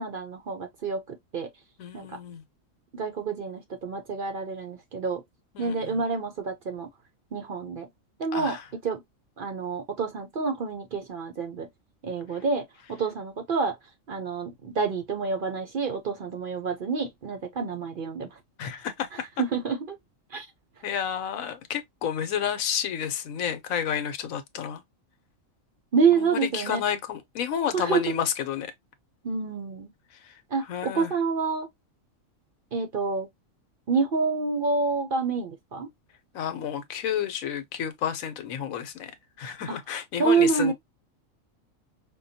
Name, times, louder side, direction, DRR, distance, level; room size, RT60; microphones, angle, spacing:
voice 1, 0.0-1.5 1.9-2.2 2.9-5.2 5.6-6.9 7.3-7.9 8.2-8.6 8.8-9.0 9.4-11.7 12.0-12.6 12.9-13.8 14.1-18.4 19.4-20.0 20.3-20.5 25.9-26.8 27.7-28.0 29.2-29.9 30.5-31.7 32.7-33.3 33.9-35.9 39.7-39.8 40.2-40.7, right 5 dB, 50° right, 0.7 m, -28 dB
voice 2, 1.8-2.4 5.5-6.0 8.3-8.6 18.6-19.3 20.8-24.8 26.1-28.7 30.1-31.1 36.3-39.1 39.4-40.7, left 8 dB, 85° left, 1.1 m, -31 dB
5.2 x 2.2 x 2.6 m
omnidirectional pair, 1.4 m